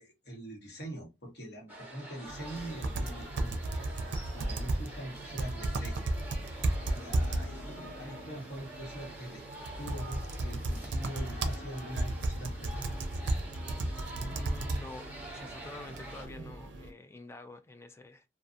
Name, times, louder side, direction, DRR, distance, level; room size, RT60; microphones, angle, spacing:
voice 1, 0.0-3.6 3.9-6.0 6.8-9.5 9.8-12.9, equal, 65° left, 1.2 m, -43 dB
sound 1, 1.7-16.3, right 1 dB, 10° right, 1.0 m, -47 dB
sound 2, 2.3-16.9, right 1 dB, 75° right, 0.5 m, -35 dB
voice 2, 14.3-18.2, left 2 dB, 15° left, 0.3 m, -48 dB
2.5 x 2.3 x 2.5 m
head